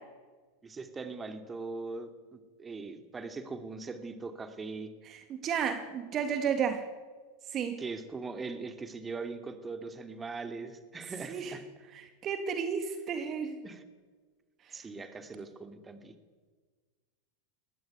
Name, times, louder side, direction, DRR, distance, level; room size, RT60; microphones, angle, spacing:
voice 1, 0.6-4.9 7.8-11.7 13.6-13.8 14.7-16.1, right 4 dB, 20° right, 8 dB, 2.8 m, -41 dB
voice 2, 5.1-6.8 7.5-7.8 11.3-11.5 11.9-13.6, right 7 dB, 35° right, 8 dB, 2.3 m, -32 dB
22.5 x 19.0 x 9.6 m, 1.4 s
figure-of-eight pair, 90°, 0 cm